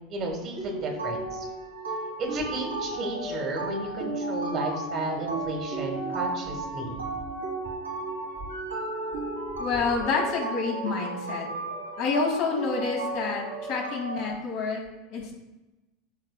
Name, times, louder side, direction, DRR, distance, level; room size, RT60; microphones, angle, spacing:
voice 1, 0.0-1.4 2.2-7.0, right 2 dB, 40° right, 1 dB, 1.8 m, -33 dB
sound 1, 0.6-14.3, right 2 dB, 85° right, 1.5 m, -34 dB
voice 2, 9.6-11.5 12.0-14.8 15.1-15.3, left 4 dB, 55° left, -2 dB, 2.4 m, -28 dB
12.5 x 4.3 x 2.3 m, 1.1 s
figure-of-eight pair, 80°, 0 cm